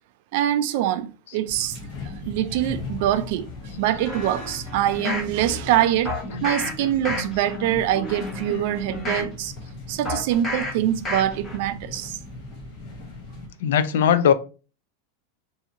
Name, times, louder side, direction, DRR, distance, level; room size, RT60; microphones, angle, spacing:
voice 1, 0.3-1.8 2.0-3.4 3.8-6.1 6.4-9.5 9.9-12.2, right 12 dB, 50° right, 0.3 m, -24 dB
sound 1, 1.4-13.5, left 2 dB, 45° left, 0.9 m, -36 dB
sound 2, 4.1-5.3 6.1-6.7 7.0-7.6 8.0-9.3 10.1-10.7 11.1-11.6 12.0-12.1, left 1 dB, 20° left, 0.8 m, -31 dB
voice 2, 13.6-14.3, left 8 dB, 80° left, 0.4 m, -19 dB
2.7 x 2.4 x 2.7 m
supercardioid pair, 165°, 0 cm